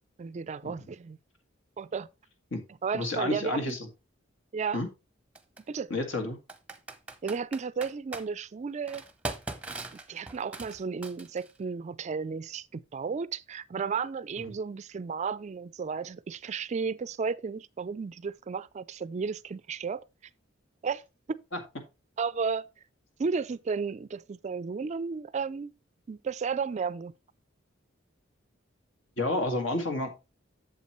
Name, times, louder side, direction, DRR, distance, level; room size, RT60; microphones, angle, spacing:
voice 1, 0.2-1.2 1.8-2.1 2.8-3.7 4.5-4.8 5.7-5.9 7.2-9.0 10.1-20.0 20.8-21.0 22.2-22.7 23.2-25.7 26.1-27.1, right 5 dB, 35° right, 0.3 m, -33 dB
voice 2, 2.9-3.8 4.7-4.9 5.9-6.4 21.5-21.6 29.2-30.2, left 2 dB, 70° left, 2.0 m, -30 dB
Computer keyboard, 3.7-3.8 5.4-5.6 6.5-8.3 8.9-11.6, right 2 dB, 5° right, 0.8 m, -40 dB
8.3 x 7.2 x 3.1 m
head